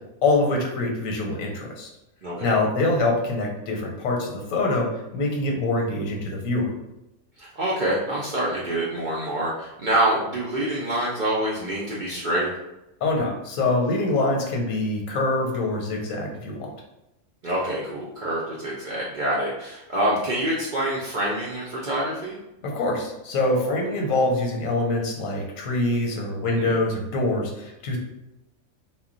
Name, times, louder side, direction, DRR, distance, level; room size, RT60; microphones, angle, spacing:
voice 1, 0.2-1.9 2.4-6.7 13.0-16.7 22.6-28.0, left 2 dB, 90° left, 1 dB, 1.1 m, -24 dB
voice 2, 2.2-2.6 7.4-12.5 17.4-22.4 26.5-26.7, right 1 dB, 60° right, -6 dB, 0.5 m, -26 dB
2.2 x 2.1 x 3.7 m, 0.92 s
omnidirectional pair, 1.4 m